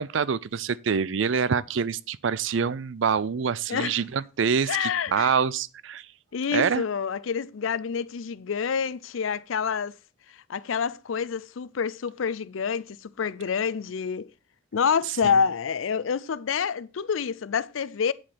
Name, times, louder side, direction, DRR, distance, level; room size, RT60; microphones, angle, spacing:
voice 1, 0.0-6.1 6.5-6.8, right 6 dB, 70° right, 0.5 m, -26 dB
voice 2, 3.7-4.0 4.7-5.3 6.3-9.9 10.3-14.3 14.7-18.1, left 6 dB, 85° left, 0.5 m, -27 dB
8.9 x 7.5 x 4.2 m
head